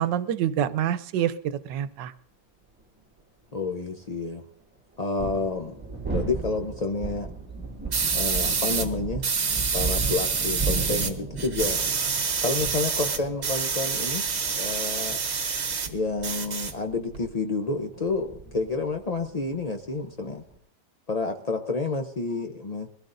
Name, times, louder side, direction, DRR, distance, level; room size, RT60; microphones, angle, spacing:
voice 1, 0.0-2.1, right 10 dB, 85° right, 13 dB, 1.4 m, -26 dB
sound 1, 2.8-2.9 5.0-20.6, right 4 dB, 5° right, 1.1 m, -35 dB
voice 2, 3.5-4.4 5.0-5.7 6.1-7.3 8.1-9.3 9.7-11.8 12.4-15.2 15.9-20.4 21.1-22.9, left 3 dB, 80° left, 4 dB, 0.3 m, -29 dB
sound 2, 7.9-8.9 9.2-11.1 11.4-15.9 16.2-17.2, right 5 dB, 45° right, 1.1 m, -27 dB
22.5 x 16.0 x 2.6 m, 0.68 s
omnidirectional pair, 1.9 m